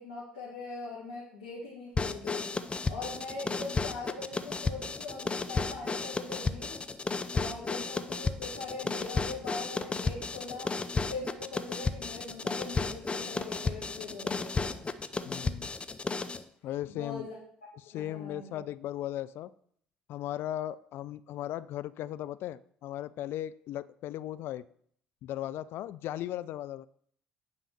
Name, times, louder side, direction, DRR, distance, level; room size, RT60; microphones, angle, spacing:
voice 1, 0.0-2.6 2.9-6.8 7.3-10.8 11.1-14.8 16.9-17.3 17.9-18.7, left 3 dB, 75° left, -7 dB, 2.7 m, -41 dB
sound 1, 2.0-16.4, left 4 dB, 25° left, 0.8 m, -33 dB
voice 2, 15.2-15.7 16.6-17.3 17.8-19.5 20.1-24.7 25.2-26.9, left 13 dB, 55° left, 16 dB, 0.4 m, -37 dB
9.4 x 5.6 x 6.8 m, 0.64 s
figure-of-eight pair, 55°, 5 cm